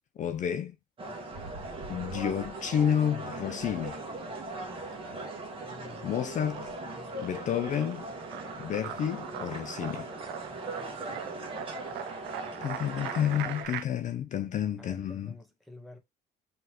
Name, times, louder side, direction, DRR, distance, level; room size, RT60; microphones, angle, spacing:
voice 1, 0.2-0.8 1.9-4.0 6.0-6.6 7.2-8.1 8.6-10.1 12.6-15.3, left 9 dB, 45° left, 0.5 m, -30 dB
sound 1, 1.0-13.6, right 2 dB, 30° right, 1.5 m, -40 dB
sound 2, 1.3-3.2 3.5-6.7, right 3 dB, 55° right, 1.7 m, -50 dB
sound 3, 4.0-4.7 5.0-13.8, right 11 dB, 80° right, 0.5 m, -42 dB
voice 2, 5.6-7.2 14.8-16.0, left 2 dB, ahead, 1.4 m, -50 dB
4.0 x 3.2 x 2.9 m
cardioid pair, 110°, 17 cm